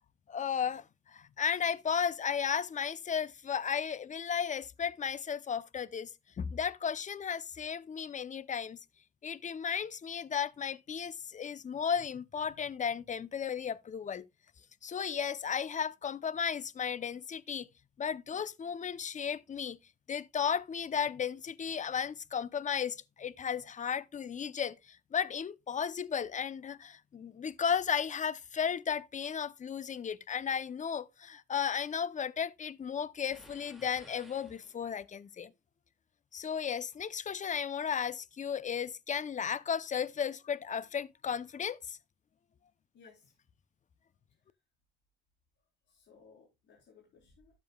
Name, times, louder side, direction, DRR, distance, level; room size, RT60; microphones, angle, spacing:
voice 1, 0.3-6.1 6.4-8.8 9.2-14.2 14.8-17.7 18.0-19.8 20.1-35.5 36.3-42.0, left 7 dB, 40° left, 0.7 m, -34 dB
sound 1, 33.3-35.1, equal, ahead, 2.3 m, -57 dB
voice 2, 42.9-43.4 45.9-47.6, left 5 dB, 70° left, 4.0 m, -60 dB
13.0 x 7.6 x 2.3 m
cardioid pair, 90°, 20 cm